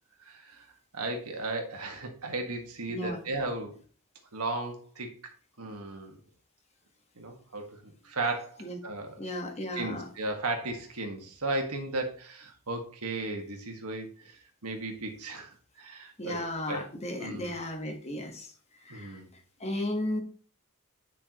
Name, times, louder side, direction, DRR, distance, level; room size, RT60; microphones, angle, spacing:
voice 1, 0.2-0.7 0.9-3.8 4.3-5.1 5.6-6.2 7.2-9.2 9.7-16.8 17.2-17.6 18.9-19.3, right 2 dB, 80° right, 3 dB, 1.7 m, -35 dB
voice 2, 2.9-3.2 8.6-8.8 9.2-10.1 16.2-18.5 18.8-19.2 19.6-20.2, left 1 dB, 30° left, 3 dB, 1.4 m, -34 dB
10.0 x 5.9 x 3.0 m, 0.41 s
head